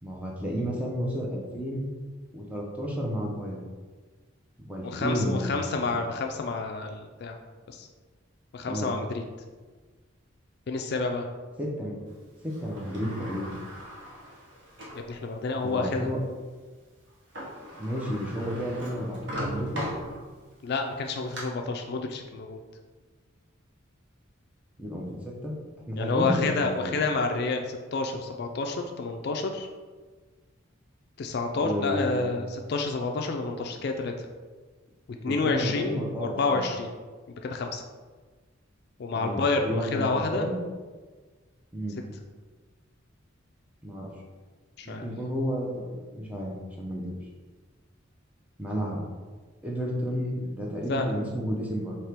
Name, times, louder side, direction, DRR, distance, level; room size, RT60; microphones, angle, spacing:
voice 1, 0.0-1.9 2.3-3.6 4.6-5.5 8.7-8.9 11.6-12.0 12.4-13.5 15.6-16.2 17.8-19.8 24.8-25.5 25.9-26.9 31.6-32.4 35.2-36.6 39.1-40.6 41.7-42.0 43.8-44.2 44.8-47.1 48.6-49.0 49.6-52.0, equal, 5° right, -2 dB, 0.6 m, -31 dB
voice 2, 4.8-7.3 7.7-7.9 8.5-9.2 10.7-11.3 14.9-16.1 20.6-22.6 26.0-29.7 31.2-34.3 35.2-36.9 37.4-37.8 39.0-40.5 44.8-45.1 50.9-51.2, left 3 dB, 50° left, 3 dB, 0.3 m, -29 dB
Sliding door, 12.5-15.1 15.7-15.8 17.1-17.2 17.3-20.5 21.0-21.4, equal, 60° right, 1.0 m, -38 dB
4.4 x 2.8 x 3.4 m, 1.4 s
head